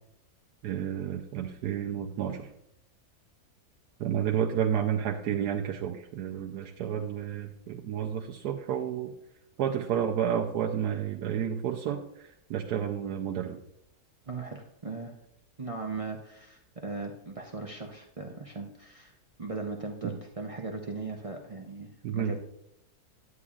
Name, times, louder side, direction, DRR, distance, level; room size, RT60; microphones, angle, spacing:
voice 1, 0.6-2.5 4.0-9.1 9.6-13.6 20.0-20.1 22.0-22.3, right 9 dB, 90° right, 2 dB, 1.2 m, -31 dB
voice 2, 14.3-15.1 15.6-22.4, right 3 dB, 50° right, 1 dB, 0.4 m, -38 dB
11.0 x 8.4 x 2.4 m, 0.79 s
omnidirectional pair, 1.7 m